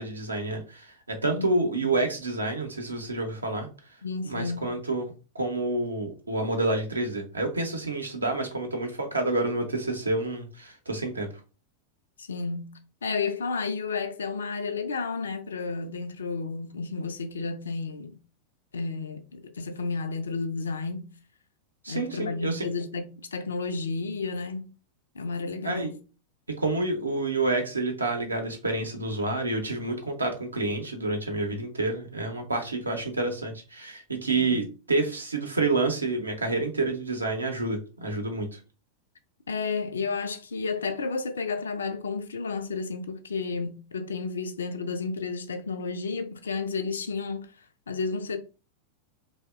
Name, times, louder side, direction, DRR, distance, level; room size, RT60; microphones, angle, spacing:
voice 1, 0.0-3.7 4.2-11.3 21.8-22.7 25.6-25.9 26.6-38.6, right 2 dB, 80° right, 0.6 m, -28 dB
voice 2, 1.3-2.0 4.0-4.7 12.2-18.1 18.7-21.1 21.9-24.7 25.2-26.0 34.3-34.7 39.5-47.5 47.9-48.4, left 4 dB, 70° left, 0.3 m, -32 dB
2.7 x 2.0 x 2.3 m
figure-of-eight pair, 90°, 0 cm